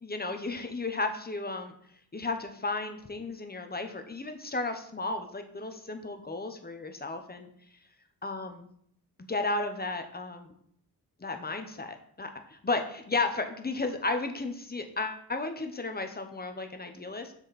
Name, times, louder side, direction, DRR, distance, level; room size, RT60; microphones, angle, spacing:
voice 1, 0.0-1.7 2.1-7.5 8.2-8.7 9.3-10.5 11.2-17.3, left 3 dB, 25° left, 6 dB, 0.9 m, -34 dB
7.3 x 6.4 x 4.2 m, 0.65 s
wide cardioid pair, 150°, 40 cm